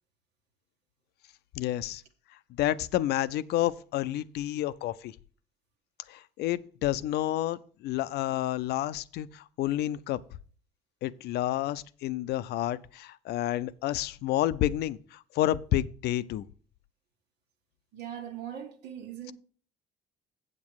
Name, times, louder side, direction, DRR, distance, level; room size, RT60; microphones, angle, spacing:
voice 1, 1.5-2.0 2.5-5.1 6.1-10.2 11.0-16.4, left 13 dB, 75° left, 0.5 m, -30 dB
voice 2, 17.9-19.3, right 9 dB, 85° right, 1.7 m, -40 dB
8.1 x 7.5 x 4.7 m
cardioid pair, 110°, 17 cm